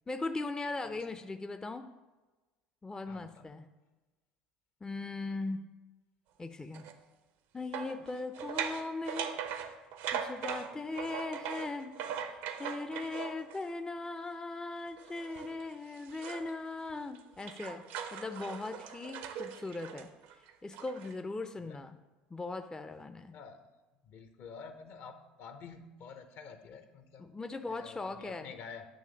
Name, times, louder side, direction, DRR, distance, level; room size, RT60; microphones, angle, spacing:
voice 1, 0.1-1.9 2.8-3.7 4.8-5.7 6.4-6.9 7.5-9.4 10.1-11.9 12.3-17.8 18.1-20.1 20.6-22.0 22.3-23.4 27.2-28.5, left 3 dB, 15° left, 8 dB, 0.4 m, -39 dB
voice 2, 3.1-3.5 21.6-21.8 23.3-23.7 24.0-27.4 27.7-28.8, left 5 dB, 55° left, 8 dB, 0.8 m, -49 dB
sound 1, 6.7-6.9 7.7-13.7 15.0-16.5 16.9-21.1, right 8 dB, 70° right, 0.6 m, -40 dB
8.9 x 3.1 x 6.2 m, 1.2 s
hypercardioid pair, 70°, 5 cm